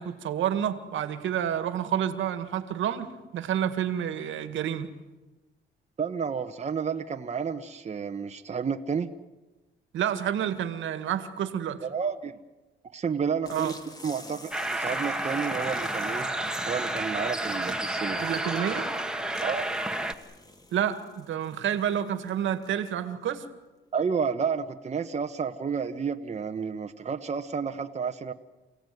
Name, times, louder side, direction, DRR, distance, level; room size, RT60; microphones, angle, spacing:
voice 1, 0.0-4.9 9.9-11.8 13.5-13.7 18.2-18.9 20.7-23.4, right 9 dB, 75° right, 10 dB, 2.0 m, -29 dB
voice 2, 6.0-9.1 11.8-12.4 12.9-13.7 14.0-16.3 16.7-18.2 19.4-19.7 23.9-28.3, right 6 dB, 35° right, 6 dB, 1.2 m, -31 dB
sound 1, 13.4-22.9, left 1 dB, 20° left, 3.2 m, -50 dB
sound 2, 14.5-20.1, right 1 dB, 5° right, 1.8 m, -30 dB
28.5 x 17.0 x 9.4 m, 1.1 s
cardioid pair, 90°, 20 cm